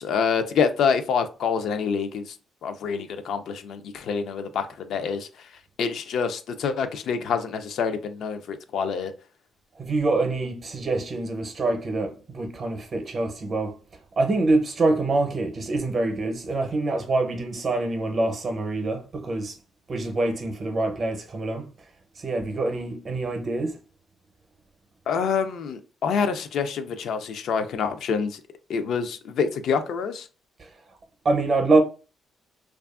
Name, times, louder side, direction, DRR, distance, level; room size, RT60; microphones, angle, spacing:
voice 1, 0.0-2.3 2.6-5.3 5.8-9.1 25.1-28.4 28.7-30.3, left 6 dB, 70° left, 0.3 m, -26 dB
voice 2, 9.8-13.8 14.2-19.5 19.9-21.7 22.2-23.8 30.6-30.7 31.2-31.8, right 2 dB, 45° right, 0.6 m, -25 dB
2.5 x 2.3 x 2.4 m
cardioid pair, 90°, 0 cm